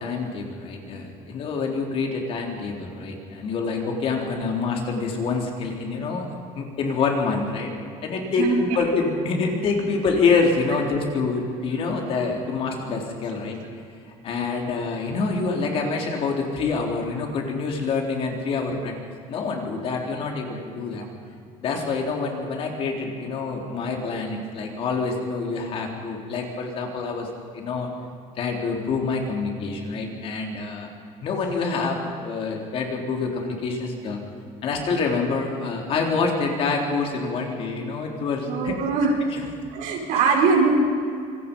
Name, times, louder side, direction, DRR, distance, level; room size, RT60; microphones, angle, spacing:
voice 1, 0.0-6.3 6.5-7.7 8.0-13.6 14.2-18.9 19.3-21.1 21.6-27.3 27.5-27.9 28.4-30.9 31.2-34.2 34.6-38.7 39.3-39.4 40.1-40.2, left 4 dB, 45° left, 1 dB, 3.9 m, -26 dB
voice 2, 38.5-39.1 39.7-40.8, right 4 dB, 70° right, 0 dB, 5.8 m, -21 dB
27.0 x 23.5 x 5.6 m, 2.4 s
cardioid pair, 175°, 14 cm